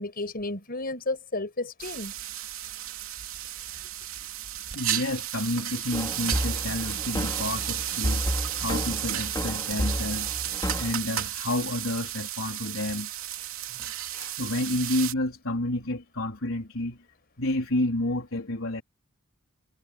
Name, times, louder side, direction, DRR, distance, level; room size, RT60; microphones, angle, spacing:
voice 1, 0.0-2.1, left 2 dB, 45° left, 6.2 m, -32 dB
sound 1, 1.8-15.1, right 12 dB, 85° right, 3.0 m, -33 dB
voice 2, 4.7-8.3 8.6-10.3 10.8-13.1 14.1-17.0 17.4-18.8, left 1 dB, 80° left, 3.9 m, -30 dB
sound 2, 5.9-10.9, equal, 20° left, 5.6 m, -31 dB
head